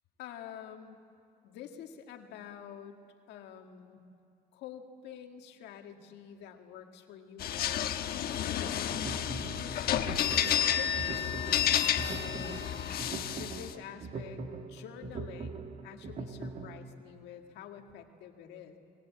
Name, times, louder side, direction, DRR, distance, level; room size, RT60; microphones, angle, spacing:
voice 1, 0.2-1.0 1.4-3.0 3.3-4.0 4.5-9.8 10.3-12.9 13.4-18.8, left 9 dB, 85° left, 4 dB, 1.9 m, -48 dB
sound 1, 7.4-13.7, left 10 dB, 65° left, 1.2 m, -31 dB
sound 2, 8.7-16.8, right 4 dB, 45° right, 1.7 m, -42 dB
24.5 x 21.5 x 8.6 m, 2.4 s
cardioid pair, 110°, 17 cm